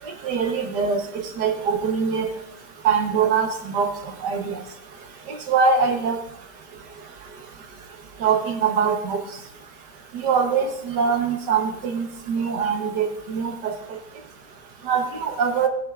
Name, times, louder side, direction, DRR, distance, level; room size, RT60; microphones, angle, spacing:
voice 1, 0.2-2.3 2.8-3.9 4.2-4.6 5.5-6.2 8.2-9.2 10.2-13.7 14.9-15.7, right 6 dB, 75° right, 4 dB, 1.6 m, -23 dB
18.0 x 6.1 x 2.4 m, 0.78 s
omnidirectional pair, 1.8 m